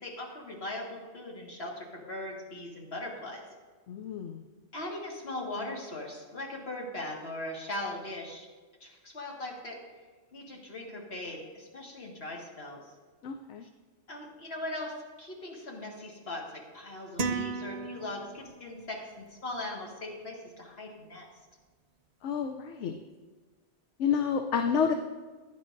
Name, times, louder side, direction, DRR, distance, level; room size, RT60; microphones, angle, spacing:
voice 1, 0.0-3.4 4.7-8.5 8.8-9.8 10.3-12.8 14.1-14.9 15.2-21.3, left 1 dB, 55° left, -1 dB, 2.0 m, -39 dB
voice 2, 3.9-4.4 13.2-13.6 22.2-23.0 24.0-24.9, left 7 dB, 75° left, 5 dB, 0.9 m, -29 dB
sound 1, 17.2-18.7, right 4 dB, 50° right, 0.5 m, -34 dB
15.0 x 10.0 x 2.6 m, 1.4 s
omnidirectional pair, 1.2 m